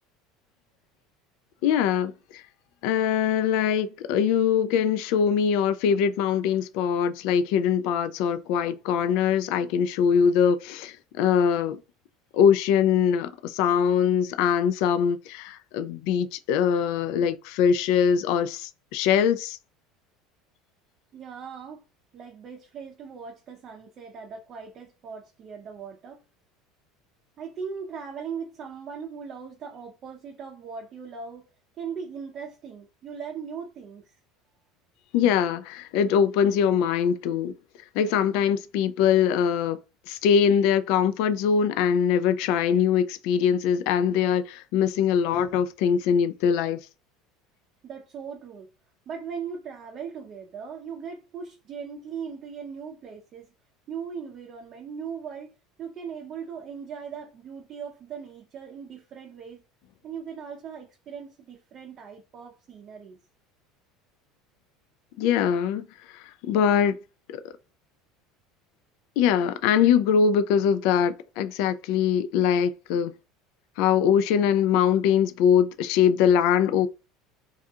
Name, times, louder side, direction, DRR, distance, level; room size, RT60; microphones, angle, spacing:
voice 1, 1.6-2.4 2.8-11.8 12.3-19.6 35.1-37.5 37.9-39.8 40.1-46.9 65.2-65.9 66.1-67.0 67.3-67.5 69.2-73.1 73.8-76.9, left 8 dB, 65° left, 0.3 m, -22 dB
voice 2, 21.1-21.8 22.1-26.2 27.4-31.5 31.8-34.2 47.8-48.7 49.1-53.5 53.9-59.6 60.0-63.2, right 6 dB, 40° right, 0.5 m, -39 dB
2.4 x 2.3 x 2.7 m
supercardioid pair, 135°, 0 cm